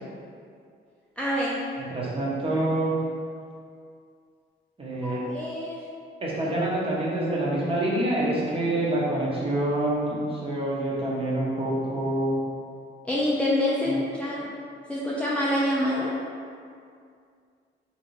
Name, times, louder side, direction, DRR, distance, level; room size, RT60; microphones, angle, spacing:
voice 1, 1.2-1.6 5.0-5.8 13.0-14.5 14.9-16.1, left 1 dB, 5° left, -7 dB, 0.4 m, -26 dB
voice 2, 1.8-2.9 4.8-5.3 6.2-12.4 13.9-14.0, right 1 dB, 30° right, -6 dB, 0.9 m, -26 dB
3.0 x 2.7 x 3.1 m, 2.3 s
cardioid pair, 90°, 20 cm